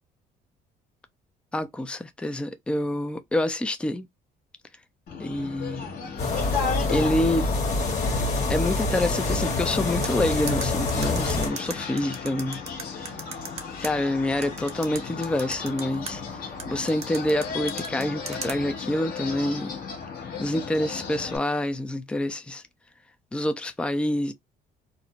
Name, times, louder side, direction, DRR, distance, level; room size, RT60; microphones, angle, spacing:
voice 1, 1.5-4.1 5.2-5.9 6.9-7.5 8.5-12.6 12.9-13.1 13.8-16.2 16.7-19.7 20.4-22.6 23.3-24.3, left 1 dB, 5° left, 0.3 m, -27 dB
sound 1, 5.1-21.4, left 5 dB, 60° left, 0.9 m, -35 dB
sound 2, 6.2-11.5, left 2 dB, 45° left, 1.2 m, -26 dB
sound 3, 10.0-13.9 14.4-16.1 16.6-18.6, right 5 dB, 40° right, 0.7 m, -36 dB
2.5 x 2.1 x 2.7 m
cardioid pair, 110°, 17 cm